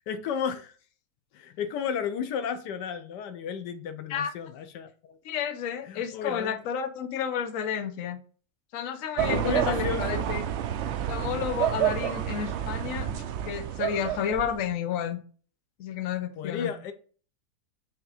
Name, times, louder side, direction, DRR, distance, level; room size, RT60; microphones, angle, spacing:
voice 1, 0.1-0.7 1.3-5.2 5.8-6.6 9.3-10.3 16.4-16.9, left 7 dB, 90° left, 1.4 m, -33 dB
voice 2, 5.2-8.2 8.7-10.4 11.1-13.1 13.5-15.2 15.8-16.7, left 8 dB, 60° left, 1.1 m, -31 dB
sound 1, 9.2-14.7, right 10 dB, 80° right, 0.6 m, -29 dB
6.4 x 3.6 x 4.8 m
omnidirectional pair, 1.8 m